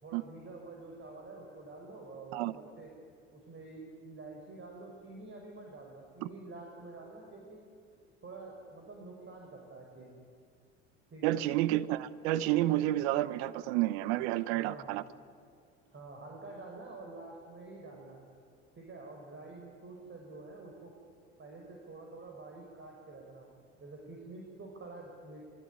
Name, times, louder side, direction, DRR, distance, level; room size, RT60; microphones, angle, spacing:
voice 1, 0.0-2.9 3.3-7.6 8.2-10.2 11.1-11.4 14.5-14.9 15.9-18.2 18.8-20.9 21.4-23.5 23.8-25.4, right 3 dB, 35° right, 1 dB, 5.8 m, -48 dB
voice 2, 11.2-15.0, right 15 dB, 70° right, 16 dB, 1.0 m, -30 dB
27.0 x 22.0 x 9.7 m, 2.4 s
hypercardioid pair, 65°, 34 cm